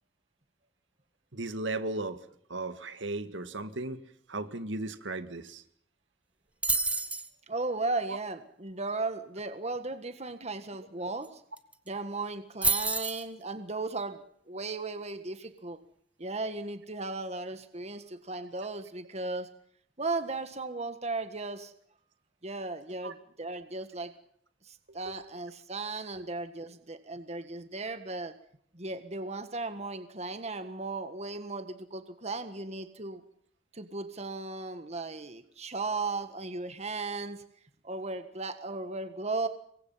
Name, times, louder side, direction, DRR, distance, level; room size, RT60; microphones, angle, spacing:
voice 1, 1.3-2.2 2.5-4.0 4.3-5.6 8.1-8.2 23.0-23.1 24.9-25.2 26.1-26.3, right 2 dB, 70° right, 10 dB, 2.1 m, -36 dB
sound 1, 6.6-7.3 11.2-11.3 11.6-11.9 12.6-13.2, right 3 dB, 5° right, 1.4 m, -28 dB
voice 2, 7.5-11.4 11.9-15.8 16.2-19.5 20.0-21.7 22.4-24.1 24.6-28.3 28.7-33.2 33.7-37.4 37.8-39.5, right 3 dB, 35° right, 9 dB, 1.6 m, -36 dB
27.0 x 23.0 x 5.8 m, 0.65 s
head